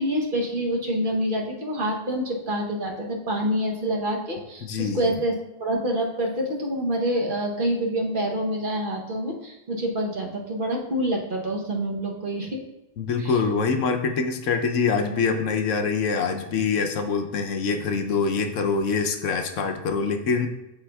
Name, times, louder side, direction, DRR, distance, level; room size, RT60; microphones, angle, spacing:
voice 1, 0.0-12.6 13.2-13.3, equal, 45° right, 0 dB, 1.0 m, -27 dB
voice 2, 4.6-5.1 13.0-20.5, left 5 dB, 75° left, 5 dB, 1.0 m, -24 dB
11.5 x 4.1 x 2.3 m, 0.97 s
omnidirectional pair, 1.4 m